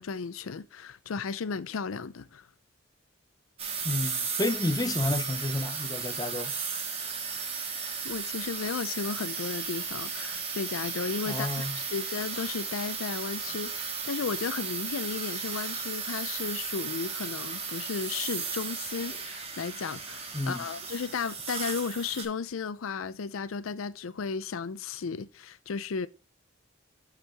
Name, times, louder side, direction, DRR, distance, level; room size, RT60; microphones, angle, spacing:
voice 1, 0.0-2.5 7.4-7.5 8.0-26.1, left 5 dB, 85° left, 0.5 m, -34 dB
sound 1, 3.6-22.2, right 5 dB, 30° right, 1.6 m, -35 dB
voice 2, 3.8-6.5 11.3-11.8 20.3-20.6, left 1 dB, 20° left, 0.5 m, -30 dB
8.2 x 6.4 x 3.5 m
head